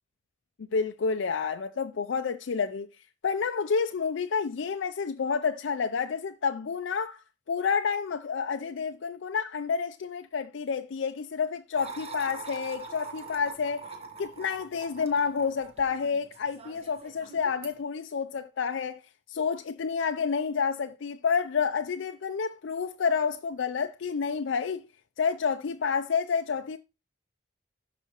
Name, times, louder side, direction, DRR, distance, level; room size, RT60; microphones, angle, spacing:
voice 1, 0.7-2.9 3.2-7.2 7.5-13.9 14.2-19.0 19.3-24.8 25.2-26.8, left 5 dB, 75° left, 0.4 m, -29 dB
sound 1, 11.7-17.8, right 4 dB, 30° right, 1.1 m, -44 dB
12.5 x 4.9 x 3.0 m
head